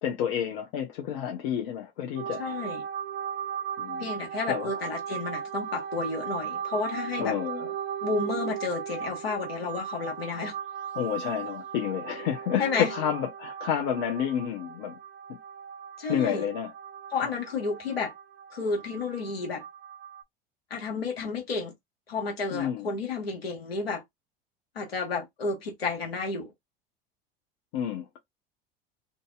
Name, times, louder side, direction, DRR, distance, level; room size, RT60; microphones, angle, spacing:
voice 1, 0.0-2.6 3.8-4.1 4.5-4.8 7.2-7.7 10.9-15.0 15.3-15.4 16.1-16.7 17.2-17.3 22.5-22.9 27.7-28.0, left 9 dB, 60° left, 0.8 m, -30 dB
sound 1, 2.2-20.2, right 9 dB, 40° right, 0.6 m, -37 dB
voice 2, 2.4-2.8 4.0-7.3 8.0-10.6 12.6-12.9 16.0-16.5 17.1-18.1 18.5-19.6 20.7-21.7 22.1-24.0 24.7-26.5, left 4 dB, 85° left, 1.3 m, -31 dB
2.7 x 2.7 x 2.3 m
hypercardioid pair, 80°, 29 cm